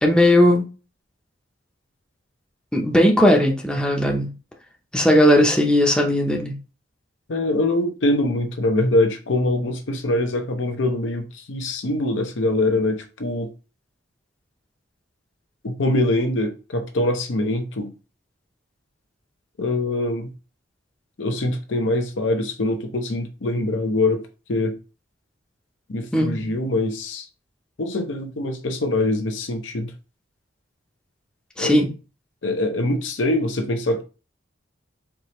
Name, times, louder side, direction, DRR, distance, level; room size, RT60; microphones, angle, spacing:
voice 1, 0.0-0.7 2.7-4.3 4.9-6.6 26.1-26.5 31.6-31.9, left 1 dB, 5° left, 0.6 m, -17 dB
voice 2, 7.3-13.5 15.6-17.9 19.6-20.3 21.2-24.2 24.5-24.7 25.9-27.3 27.8-29.9 31.6-31.8 32.4-34.0, left 2 dB, 70° left, 0.7 m, -23 dB
4.7 x 2.8 x 2.9 m
head